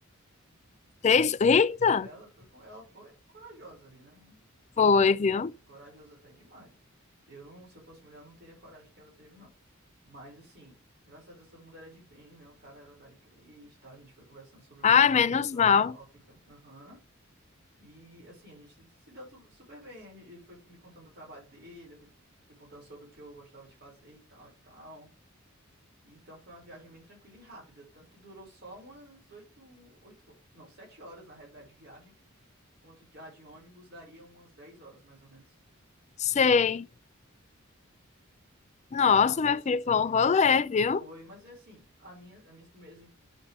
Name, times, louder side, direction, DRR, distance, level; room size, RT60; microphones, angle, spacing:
voice 1, 1.0-2.1 4.8-5.5 14.8-15.9 36.2-36.9 38.9-41.0, left 6 dB, 35° left, 0.4 m, -22 dB
voice 2, 1.8-4.4 5.7-6.7 7.3-9.5 10.0-10.8 11.0-15.0 15.3-17.0 17.8-22.1 22.5-25.1 26.0-32.1 32.8-35.6 39.1-39.6 40.0-40.4 41.0-43.1, right 1 dB, 50° right, 5.7 m, -51 dB
10.0 x 5.6 x 3.6 m
head